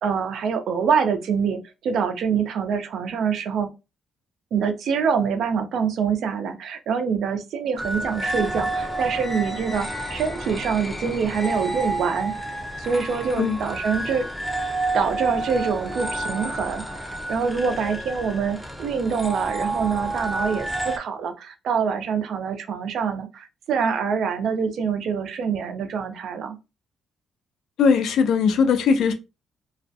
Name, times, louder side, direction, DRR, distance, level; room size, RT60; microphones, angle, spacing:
voice 1, 0.0-3.7 4.5-12.3 12.8-14.3 14.9-26.6, right 6 dB, 70° right, 0.4 m, -25 dB
sound 1, 7.8-21.0, right 1 dB, 5° left, 0.5 m, -30 dB
voice 2, 27.8-29.1, left 5 dB, 75° left, 0.4 m, -19 dB
2.3 x 2.1 x 2.6 m
cardioid pair, 90°, 0 cm